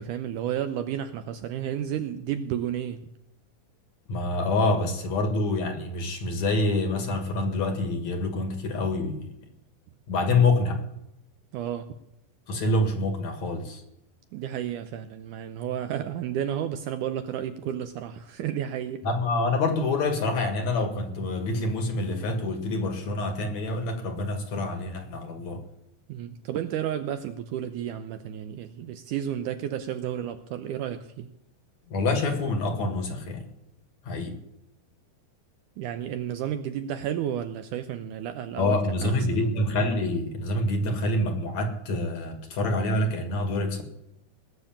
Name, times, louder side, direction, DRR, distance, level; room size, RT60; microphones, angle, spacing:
voice 1, 0.0-3.0 11.5-12.0 14.3-19.1 26.1-31.3 35.8-39.5, right 10 dB, 80° right, 1.9 m, -32 dB
voice 2, 4.1-9.3 10.1-10.8 12.5-13.8 19.0-25.6 31.9-33.5 34.0-34.4 38.6-43.8, left 2 dB, 55° left, 2.7 m, -26 dB
19.5 x 6.9 x 8.7 m
omnidirectional pair, 4.2 m